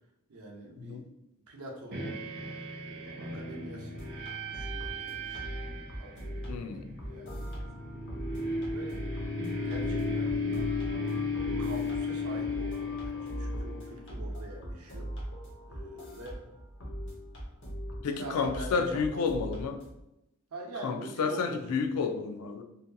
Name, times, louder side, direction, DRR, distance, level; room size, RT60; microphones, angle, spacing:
voice 1, 0.3-1.0 1.5-2.1 2.8-5.4 6.0-6.4 7.1-7.4 8.6-9.0 9.5-10.4 11.6-15.1 15.7-16.4 18.0-19.6 20.5-21.8, right 1 dB, 85° right, 0 dB, 0.6 m, -44 dB
sound 1, 1.9-14.0, left 2 dB, 45° right, 0.6 m, -35 dB
sound 2, 4.0-20.0, equal, 55° left, 0.7 m, -41 dB
voice 2, 6.5-6.8 18.0-19.8 20.8-22.6, left 5 dB, 90° left, 6 dB, 0.4 m, -30 dB
2.7 x 2.6 x 2.2 m, 0.88 s
head